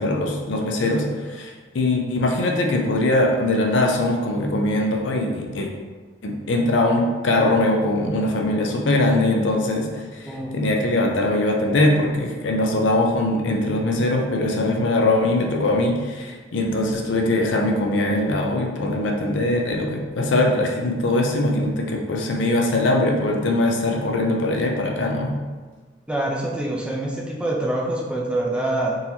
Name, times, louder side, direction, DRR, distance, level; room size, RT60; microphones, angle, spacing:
voice 1, 0.0-5.7 6.2-25.3, left 1 dB, 80° left, 1 dB, 0.5 m, -21 dB
voice 2, 10.2-10.6 26.1-29.0, right 1 dB, 5° right, -2 dB, 0.3 m, -25 dB
3.9 x 2.8 x 2.7 m, 1.4 s
head